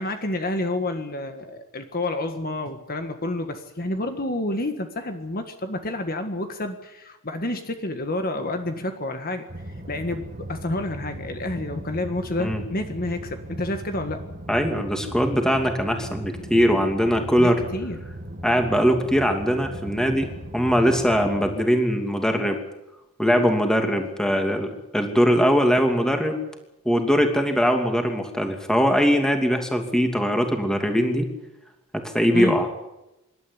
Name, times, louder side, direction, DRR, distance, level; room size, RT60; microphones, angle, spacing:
voice 1, 0.0-9.4 9.9-14.2 17.4-18.0 32.3-32.6, left 2 dB, 40° left, 6 dB, 1.7 m, -29 dB
navy bow ship sunset, 9.5-21.6, right 1 dB, 35° right, 1.8 m, -38 dB
voice 2, 14.5-17.6 18.4-22.6 23.2-26.4 26.8-31.3 31.9-32.7, equal, 5° left, 4 dB, 2.7 m, -21 dB
26.5 x 12.5 x 10.0 m, 0.95 s
head